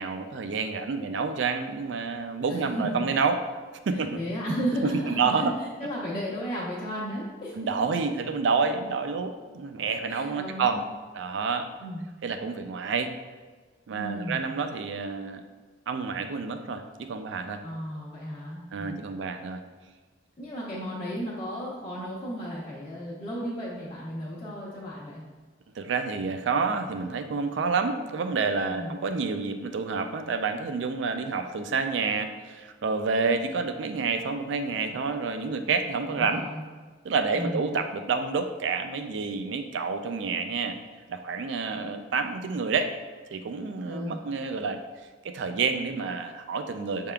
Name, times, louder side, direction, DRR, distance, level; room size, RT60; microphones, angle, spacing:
voice 1, 0.0-3.4 3.9-4.2 4.8-5.4 7.6-10.8 11.1-11.7 12.2-13.1 13.9-15.4 15.9-17.6 18.7-19.6 25.8-36.4 37.0-40.8 41.1-42.9 43.3-44.8 45.2-47.1, right 4 dB, 80° right, 8 dB, 0.4 m, -29 dB
voice 2, 2.5-3.0 3.9-5.5 5.8-7.6 10.1-10.8 11.8-12.1 13.9-14.5 17.6-19.0 20.4-25.2 28.7-28.9 36.1-36.6 37.3-37.6 43.8-44.2, equal, 30° left, -10 dB, 0.8 m, -34 dB
6.5 x 3.5 x 2.3 m, 1.4 s
head